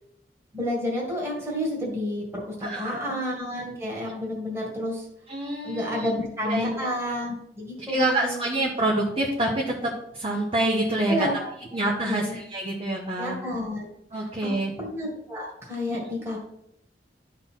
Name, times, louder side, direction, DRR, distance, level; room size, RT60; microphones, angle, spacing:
voice 1, 0.5-5.1 5.6-8.4 11.1-11.5 12.0-12.3 13.2-13.9 14.1-14.5 14.8-16.4, left 1 dB, 15° right, -3 dB, 1.9 m, -30 dB
voice 2, 2.6-3.0 5.3-6.1 6.5-6.9 7.8-11.3 11.7-13.3 14.1-14.7 15.9-16.0, right 1 dB, 35° right, -1 dB, 1.1 m, -27 dB
11.5 x 4.0 x 4.5 m, 0.77 s
head